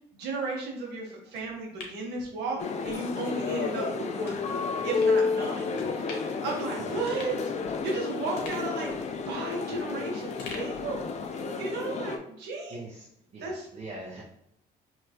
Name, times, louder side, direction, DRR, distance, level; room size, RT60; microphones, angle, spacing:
voice 1, 0.1-4.4 4.8-5.7 6.0-7.4 7.6-11.0 11.6-12.8 13.4-13.7, right 3 dB, 80° right, -1 dB, 1.4 m, -34 dB
sound 1, 1.3-3.0 3.3-3.4 4.2-4.4 5.0-5.2 5.7-6.4 6.7-6.8 7.1-8.0 8.4-10.0 10.4-11.6 11.9-12.0, left 3 dB, 75° left, 1.2 m, -46 dB
sound 2, 2.6-12.2, left 4 dB, 40° left, 0.5 m, -31 dB
voice 2, 12.7-13.1 13.3-14.2, right 2 dB, 40° right, -3 dB, 0.9 m, -42 dB
4.8 x 2.9 x 2.9 m, 0.77 s
cardioid pair, 110°, 17 cm